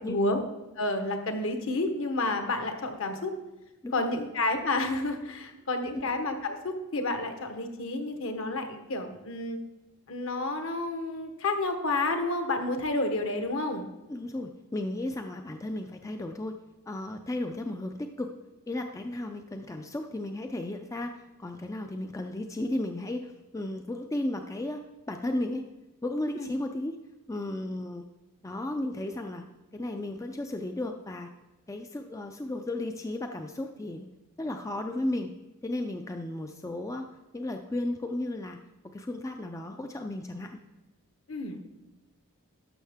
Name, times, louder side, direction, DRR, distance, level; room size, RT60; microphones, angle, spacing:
voice 1, 0.0-0.4 0.8-3.3 3.9-9.6 10.1-13.9 26.4-26.5 41.3-41.6, left 2 dB, 60° left, 6 dB, 1.0 m, -30 dB
voice 2, 14.1-16.6 16.9-18.3 18.7-24.8 25.1-25.6 26.0-27.0 27.3-28.0 28.4-29.4 29.7-31.3 31.7-34.1 34.4-35.3 35.6-37.1 37.3-38.6 38.9-40.6, left 1 dB, 15° left, 5 dB, 0.3 m, -34 dB
12.0 x 6.4 x 3.5 m, 1.1 s
head